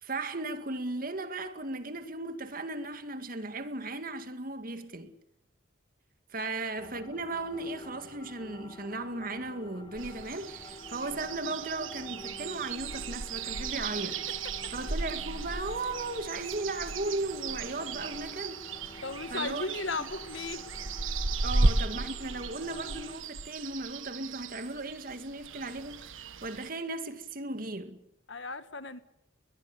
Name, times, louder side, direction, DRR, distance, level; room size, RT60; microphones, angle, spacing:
voice 1, 0.0-5.1 6.3-14.2 14.7-18.6 19.3-20.1 21.4-28.0, right 2 dB, 45° right, 2.2 m, -36 dB
sound 1, 6.8-23.2, left 1 dB, 20° left, 1.9 m, -49 dB
sound 2, 9.9-26.7, right 3 dB, 75° right, 1.5 m, -35 dB
voice 2, 19.0-20.6 28.3-29.0, left 3 dB, 65° left, 1.8 m, -36 dB
22.0 x 21.5 x 8.6 m
head